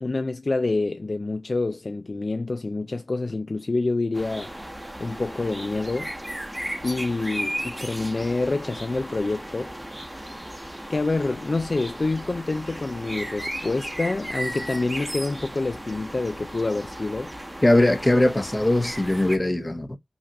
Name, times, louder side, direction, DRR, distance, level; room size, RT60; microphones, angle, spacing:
voice 1, 0.0-4.5 5.0-6.1 6.8-9.8 10.9-17.3, left 3 dB, 50° left, 0.3 m, -27 dB
sound 1, 4.1-19.4, equal, 10° right, 1.0 m, -35 dB
voice 2, 17.6-20.0, left 1 dB, 25° left, 0.8 m, -20 dB
5.2 x 2.4 x 2.8 m
wide cardioid pair, 80°, 0 cm